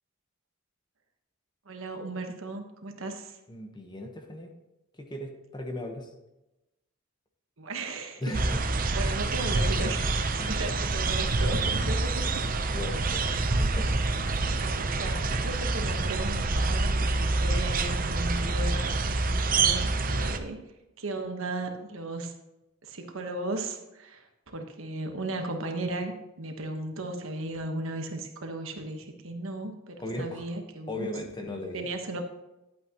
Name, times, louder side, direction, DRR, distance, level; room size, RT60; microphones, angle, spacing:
voice 1, 1.6-3.4 7.6-8.4 8.7-12.4 13.3-13.7 14.1-20.6 21.0-22.3 22.8-31.1 31.7-32.2, right 2 dB, 70° right, 4 dB, 1.2 m, -36 dB
voice 2, 3.5-4.5 4.9-6.1 8.2-8.6 9.0-9.3 10.4-10.6 12.7-13.9 14.4-14.8 30.0-30.5 30.9-31.8, left 1 dB, 20° left, 3 dB, 1.1 m, -37 dB
sound 1, 8.3-20.4, right 3 dB, 40° right, 0.6 m, -27 dB
11.0 x 8.7 x 3.0 m, 0.96 s
head